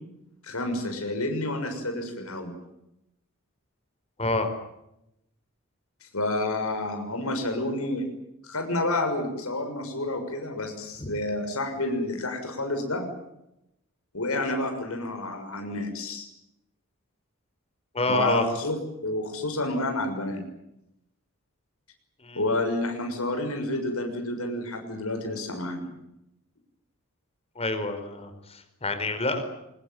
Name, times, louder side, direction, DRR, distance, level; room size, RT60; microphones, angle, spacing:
voice 1, 0.4-2.5 6.1-8.1 8.4-13.0 14.1-16.3 18.1-18.8 19.0-20.4 22.3-25.8, left 2 dB, 80° left, 4 dB, 6.5 m, -29 dB
voice 2, 4.2-4.5 11.0-11.1 17.9-18.4 22.2-22.4 27.5-29.4, left 2 dB, 30° left, 8 dB, 4.9 m, -27 dB
25.0 x 22.0 x 9.5 m, 0.84 s
head